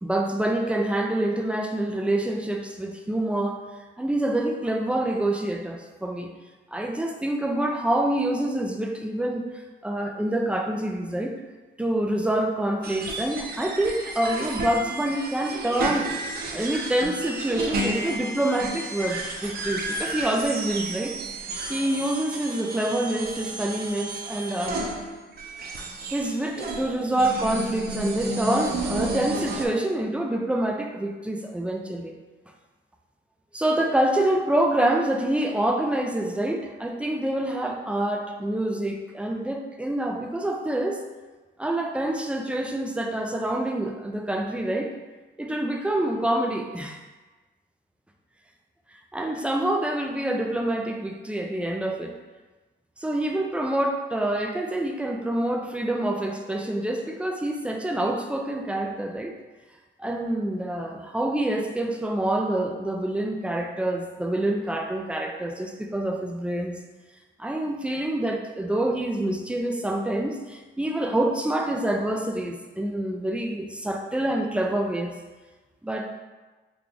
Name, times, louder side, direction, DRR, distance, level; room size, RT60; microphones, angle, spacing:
voice 1, 0.0-3.6 4.0-6.3 6.7-9.4 9.8-11.4 11.8-16.1 16.5-21.2 21.7-24.9 26.1-32.1 33.5-41.0 41.6-44.9 45.4-47.0 49.1-52.1 53.0-59.3 60.0-66.8 67.4-75.2 75.8-76.1, right 1 dB, 5° right, 2 dB, 0.4 m, -26 dB
sound 1, 12.8-29.7, right 2 dB, 50° right, 0.6 m, -32 dB
3.2 x 2.3 x 3.8 m, 1.2 s
cardioid pair, 90°, 20 cm